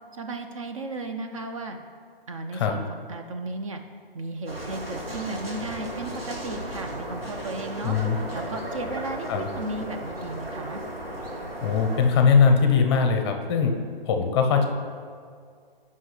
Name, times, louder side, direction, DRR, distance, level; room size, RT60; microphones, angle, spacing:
voice 1, 0.1-1.8 2.3-3.8 4.1-8.0 8.3-10.8, right 2 dB, 35° right, 5 dB, 0.4 m, -35 dB
sound 1, 4.5-12.1, right 1 dB, 85° right, 2.2 m, -35 dB
voice 2, 7.8-8.2 9.3-9.5 11.6-13.7 14.1-14.7, left 5 dB, 30° left, 5 dB, 0.7 m, -20 dB
13.0 x 5.5 x 3.2 m, 2.1 s
figure-of-eight pair, 135°, 29 cm